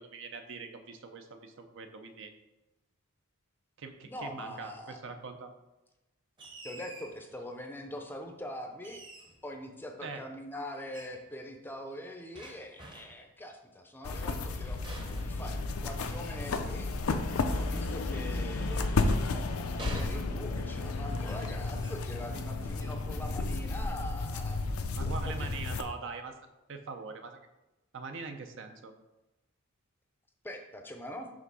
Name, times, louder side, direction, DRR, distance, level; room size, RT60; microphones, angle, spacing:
voice 1, 0.0-2.3 3.8-5.5 10.0-10.2 24.9-26.3 26.7-27.4 27.9-28.9, right 4 dB, 60° right, 6 dB, 0.6 m, -42 dB
voice 2, 4.0-5.1 6.6-9.0 9.4-14.8 15.2-16.9 17.5-24.7 25.0-25.5 30.4-31.3, left 1 dB, 10° left, 4 dB, 0.5 m, -43 dB
sound 1, 6.4-7.2 8.8-9.5 10.9-11.2 12.3-13.3 14.8-16.1 18.2-19.4 19.8-20.7 21.2-21.5 21.8-22.1 22.7-23.1, right 2 dB, 25° right, 0.8 m, -48 dB
sound 2, 14.0-25.8, left 3 dB, 80° left, 0.5 m, -32 dB
5.1 x 3.5 x 5.4 m, 1.0 s
head